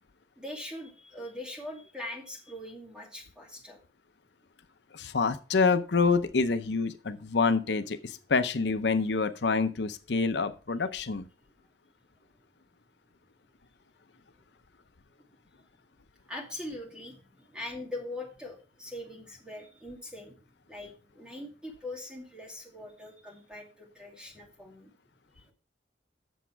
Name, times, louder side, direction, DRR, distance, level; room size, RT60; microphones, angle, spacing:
voice 1, 0.4-3.8 15.2-15.3 16.3-20.4 20.7-24.9 25.4-25.5, left 1 dB, 5° right, 0 dB, 2.5 m, -42 dB
voice 2, 4.9-11.2, left 4 dB, 75° left, 9 dB, 0.7 m, -27 dB
8.2 x 7.1 x 4.6 m, 0.36 s
head